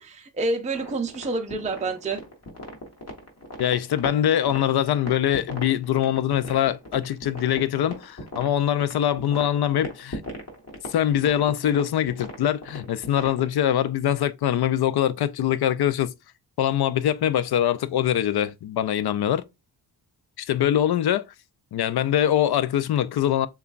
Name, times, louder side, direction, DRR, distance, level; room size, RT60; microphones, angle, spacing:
voice 1, 0.0-2.2, right 3 dB, 15° right, 0.5 m, -28 dB
sound 1, 0.7-13.5, left 1 dB, 35° left, 1.3 m, -38 dB
voice 2, 3.6-10.2 10.9-16.1 16.6-19.4 20.4-21.3 21.7-23.5, left 10 dB, 60° left, 0.5 m, -23 dB
6.7 x 2.3 x 2.4 m
cardioid pair, 85°, 44 cm